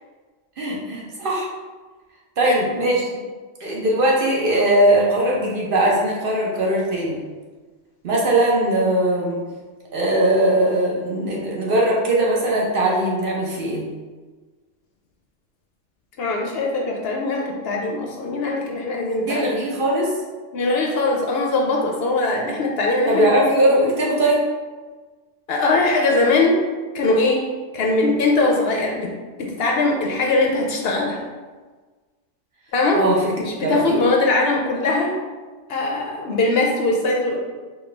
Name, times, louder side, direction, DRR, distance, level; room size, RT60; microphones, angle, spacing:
voice 1, 0.6-1.5 2.4-3.2 3.6-7.2 8.0-9.4 9.9-13.9 19.3-20.1 23.1-24.5 32.9-33.2 33.6-34.0, right 1 dB, 55° right, -3 dB, 0.8 m, -20 dB
voice 2, 16.2-19.5 20.5-23.3 23.6-23.7 25.5-26.6 26.9-27.5 27.7-29.1 29.4-31.2 32.7-33.0 33.4-35.1 35.7-37.4, left 2 dB, 65° left, 0 dB, 0.7 m, -21 dB
4.3 x 2.2 x 3.3 m, 1.4 s
omnidirectional pair, 1.2 m